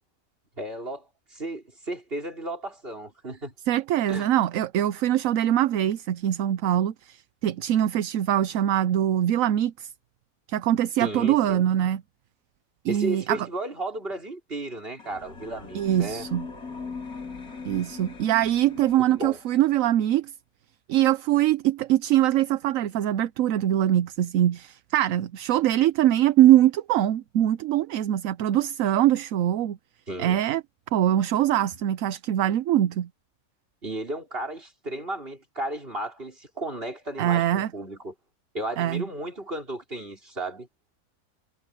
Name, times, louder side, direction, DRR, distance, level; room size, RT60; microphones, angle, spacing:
voice 1, 0.6-3.5 4.1-4.3 11.0-11.6 12.9-16.3 19.0-19.4 30.1-30.4 33.8-38.1 38.5-40.7, right 1 dB, 40° right, 5.4 m, -34 dB
voice 2, 3.7-9.9 10.5-12.0 12.8-13.5 15.7-16.4 17.6-20.3 20.9-29.8 30.2-30.6 30.9-33.1 37.2-37.7 38.8-39.0, right 12 dB, 70° right, 1.0 m, -23 dB
sound 1, 15.0-19.6, left 4 dB, 90° left, 4.1 m, -40 dB
omnidirectional pair, 1.5 m